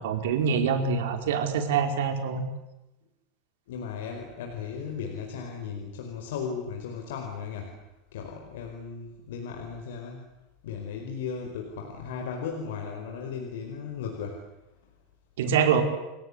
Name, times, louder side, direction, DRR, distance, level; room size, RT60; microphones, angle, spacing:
voice 1, 0.0-2.4 15.4-15.8, right 6 dB, 85° right, 6 dB, 4.9 m, -25 dB
voice 2, 3.7-7.8 8.1-10.2 10.6-14.5, left 6 dB, 90° left, 3 dB, 4.8 m, -36 dB
29.5 x 18.0 x 9.8 m, 0.97 s
supercardioid pair, 175°, 0 cm